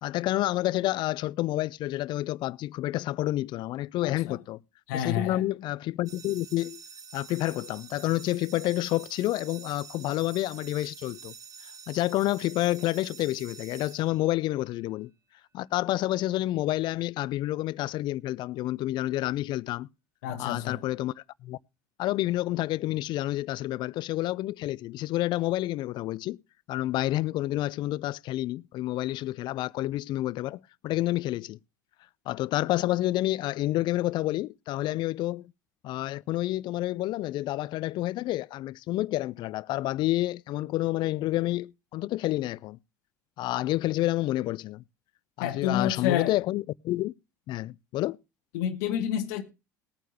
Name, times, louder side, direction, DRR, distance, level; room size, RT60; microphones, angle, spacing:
voice 1, 0.0-4.6 4.9-6.8 7.1-11.3 11.6-15.1 15.5-19.9 20.4-21.6 22.0-26.4 26.7-31.6 32.3-35.5 35.8-42.8 43.4-44.8 45.4-47.1 47.5-48.2, left 16 dB, 55° left, 0.5 m, -29 dB
voice 2, 4.0-4.3 4.9-5.4 20.2-20.8 45.4-46.3 48.5-49.5, left 10 dB, 70° left, 1.2 m, -29 dB
sound 1, 6.1-14.7, right 6 dB, 40° right, 1.3 m, -47 dB
20.0 x 9.1 x 2.9 m
hypercardioid pair, 70°, 10 cm